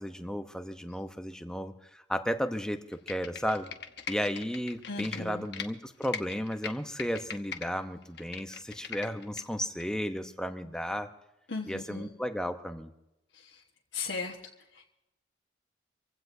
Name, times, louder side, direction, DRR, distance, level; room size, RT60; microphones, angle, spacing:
voice 1, 0.0-3.7 4.1-11.1 11.7-12.9, equal, 5° left, 7 dB, 0.8 m, -34 dB
Computer keyboard, 2.9-5.7 6.0-7.7 8.0-9.4 9.8-9.9, left 6 dB, 60° left, 1.1 m, -40 dB
voice 2, 4.9-5.5 11.5-12.1 13.3-13.6 13.9-14.4 14.7-14.9, left 4 dB, 80° left, -2 dB, 1.3 m, -37 dB
25.5 x 16.0 x 2.7 m, 0.89 s
head